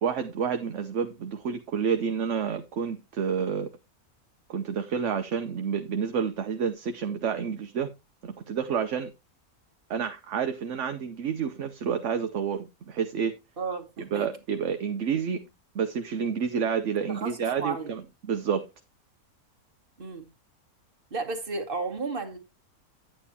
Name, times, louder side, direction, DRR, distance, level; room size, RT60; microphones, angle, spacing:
voice 1, 0.0-3.7 4.5-7.9 8.2-9.1 9.9-13.3 14.0-15.5 15.7-18.0 18.3-18.7, right 7 dB, 60° right, 1.1 m, -29 dB
voice 2, 13.6-14.3 17.1-17.9 20.0-20.2 21.1-22.4, right 4 dB, 35° right, 1.9 m, -33 dB
10.0 x 9.2 x 2.8 m
omnidirectional pair, 1.6 m